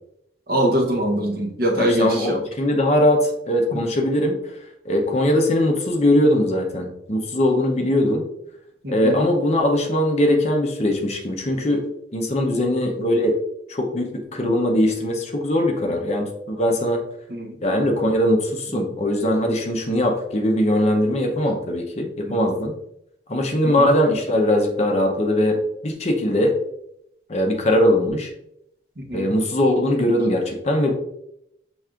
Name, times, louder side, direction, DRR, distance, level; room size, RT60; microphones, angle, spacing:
voice 1, 0.5-2.4 3.7-3.8 8.8-9.2 12.6-12.7 17.3-17.5 18.7-18.8 22.3-22.4 23.6-23.9 29.0-29.3, equal, 60° right, 2 dB, 0.8 m, -23 dB
voice 2, 1.8-4.4 4.8-8.2 8.9-11.8 12.1-13.4 13.7-17.0 17.6-22.7 23.3-25.6 25.8-26.5 27.3-28.3 29.1-30.9, left 1 dB, 40° left, 2 dB, 0.7 m, -20 dB
6.0 x 3.3 x 2.4 m, 0.79 s
head